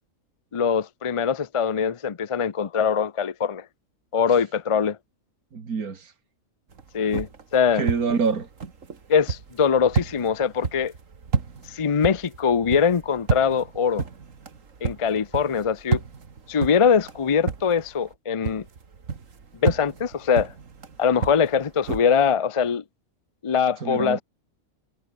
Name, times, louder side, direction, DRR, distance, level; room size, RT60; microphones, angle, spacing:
voice 1, 0.5-3.6 4.1-5.0 6.9-7.8 9.1-10.9 11.7-14.0 14.8-16.0 16.5-18.6 19.6-20.5 21.0-22.8 23.4-24.2, left 6 dB, 45° left, 0.4 m, -22 dB
voice 2, 5.5-6.1 7.7-8.5 23.8-24.2, right 5 dB, 90° right, 2.6 m, -26 dB
sound 1, 6.7-18.1 18.4-22.0, right 5 dB, 60° right, 2.3 m, -31 dB
omnidirectional pair, 1.5 m